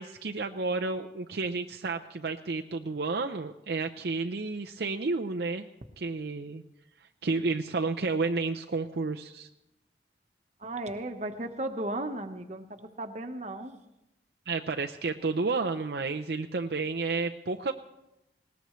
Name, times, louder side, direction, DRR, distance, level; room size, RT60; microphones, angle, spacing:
voice 1, 0.0-5.6 6.0-6.6 7.0-9.5 14.5-17.7, right 3 dB, 65° right, 4 dB, 0.6 m, -31 dB
voice 2, 10.6-13.7, right 1 dB, 40° right, 7 dB, 1.1 m, -35 dB
20.0 x 18.5 x 3.2 m, 0.91 s
head